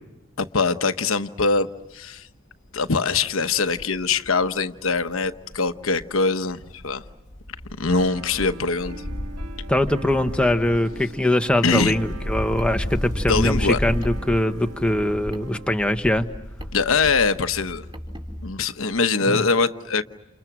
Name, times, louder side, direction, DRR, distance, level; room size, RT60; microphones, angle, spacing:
voice 1, 0.4-2.3 2.7-7.0 7.8-9.0 11.6-11.9 13.3-13.8 16.7-17.9 18.4-20.0, left 4 dB, 70° left, 1.1 m, -23 dB
Wind, 1.8-1.9 2.3-2.4 2.7-6.2 6.5-18.7 18.9-19.0, equal, 35° left, 1.5 m, -34 dB
sound 1, 7.9-15.9, right 1 dB, 85° right, 1.6 m, -42 dB
voice 2, 9.7-16.2 19.3-19.4, left 1 dB, 5° left, 1.2 m, -22 dB
Car, 12.5-18.5, equal, 25° right, 4.2 m, -43 dB
30.0 x 29.5 x 6.1 m
head